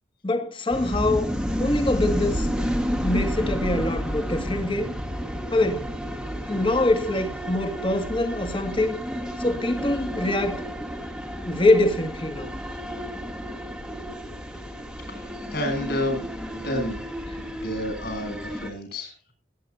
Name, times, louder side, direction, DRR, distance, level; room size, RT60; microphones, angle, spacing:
voice 1, 0.2-1.3 1.6-2.5 3.0-5.0 5.5-5.9 6.5-9.0 9.4-10.7 11.5-12.5, left 2 dB, 25° left, 2.1 m, -24 dB
sound 1, 0.7-18.7, equal, 5° right, 1.6 m, -31 dB
voice 2, 15.1-16.3 16.5-17.0 17.4-19.3, left 1 dB, 55° left, 7.5 m, -30 dB
19.0 x 10.0 x 2.7 m
head